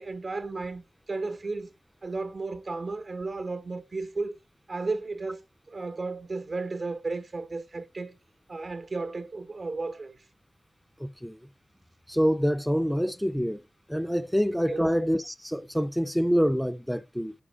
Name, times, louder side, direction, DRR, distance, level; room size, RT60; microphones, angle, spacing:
voice 1, 0.0-1.7 2.0-4.4 4.7-5.4 5.7-8.2 8.5-10.2 14.7-14.9, right 3 dB, 60° right, 0.9 m, -34 dB
voice 2, 11.0-11.4 12.1-13.6 13.9-17.3, equal, ahead, 0.4 m, -26 dB
5.3 x 4.9 x 4.9 m
wide cardioid pair, 65°, 0 cm